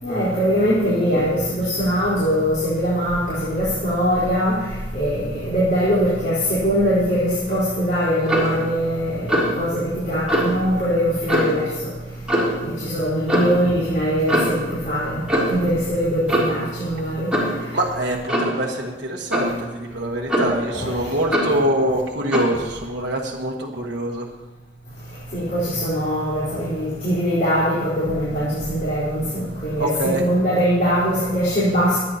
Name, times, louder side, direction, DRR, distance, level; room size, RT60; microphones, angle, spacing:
voice 1, 0.0-4.6 4.9-11.7 12.8-17.3 20.8-20.9 25.3-32.0, equal, 45° left, -10 dB, 4.2 m, -21 dB
Clock, 8.3-8.6 9.3-9.6 10.3-10.5 11.3-11.6 12.3-12.6 13.3-13.5 14.3-14.6 15.3-15.6 16.3-16.6 17.3-17.6 18.3-18.6 19.3-19.6 20.3-20.7 21.3-21.6 22.3-22.5, equal, 5° right, 3.4 m, -21 dB
voice 2, 17.7-24.3 29.8-30.3, right 1 dB, 65° right, -2 dB, 1.3 m, -24 dB
24.0 x 9.6 x 2.9 m, 1.2 s
head